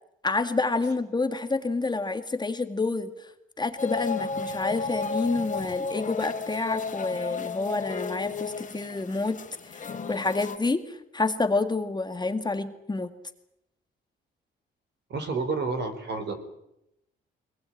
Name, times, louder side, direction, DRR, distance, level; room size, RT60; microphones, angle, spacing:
voice 1, 0.2-3.1 3.6-9.4 9.7-13.1, left 3 dB, 20° left, 8 dB, 1.9 m, -28 dB
sound 1, 3.8-10.6, left 4 dB, 40° left, 3.0 m, -33 dB
voice 2, 15.1-16.4, right 4 dB, 60° right, 8 dB, 4.3 m, -30 dB
22.0 x 19.5 x 9.1 m, 0.83 s
cardioid pair, 90°, 20 cm